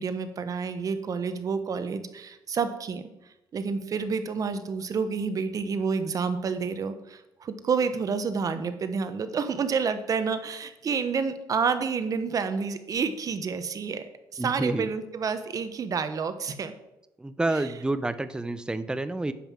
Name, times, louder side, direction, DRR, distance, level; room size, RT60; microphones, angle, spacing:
voice 1, 0.0-3.0 3.5-16.7 17.5-17.6, right 5 dB, 45° right, 10 dB, 1.2 m, -29 dB
voice 2, 14.4-14.9 17.2-19.3, right 2 dB, 10° right, 13 dB, 0.7 m, -29 dB
10.0 x 5.7 x 7.5 m, 0.91 s
cardioid pair, 100°, 8 cm